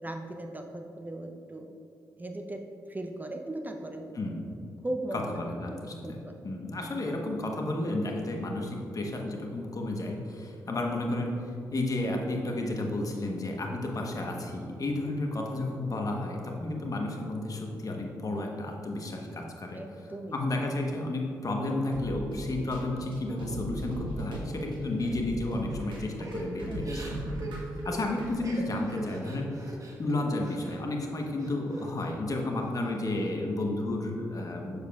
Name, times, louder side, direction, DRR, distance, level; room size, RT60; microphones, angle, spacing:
voice 1, 0.0-1.7 2.2-4.1 4.8-5.2 5.6-5.8 6.0-6.4 15.0-15.1 19.7-20.4 26.7-27.2, right 1 dB, 20° right, 4 dB, 0.6 m, -38 dB
voice 2, 5.1-6.2 6.4-11.4 11.7-19.8 20.3-27.1 27.8-29.5 30.0-34.8, left 2 dB, 45° left, 1 dB, 1.1 m, -32 dB
sound 1, 21.9-28.3, equal, 75° right, 1.3 m, -38 dB
Crying sobbing / Breathing, 26.2-30.8 31.2-32.1 32.5-33.3, right 2 dB, 40° right, 1.1 m, -42 dB
7.0 x 6.5 x 2.4 m, 2.8 s
hypercardioid pair, 40°, 8 cm